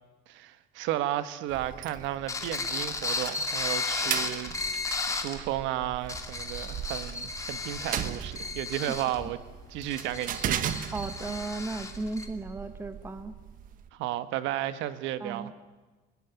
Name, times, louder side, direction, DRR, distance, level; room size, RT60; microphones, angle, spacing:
voice 1, 0.3-4.5 4.9-9.4 9.7-10.7 13.9-15.5, right 13 dB, 80° right, 12 dB, 1.4 m, -33 dB
sound 1, 1.5-13.9, right 10 dB, 45° right, 1.2 m, -38 dB
sound 2, 2.3-5.4 5.9-12.3, left 3 dB, 15° left, 2.1 m, -34 dB
voice 2, 10.9-13.3 15.2-15.5, right 3 dB, 10° right, 10 dB, 1.2 m, -35 dB
28.5 x 18.5 x 9.4 m, 1.3 s
cardioid pair, 180°, 19 cm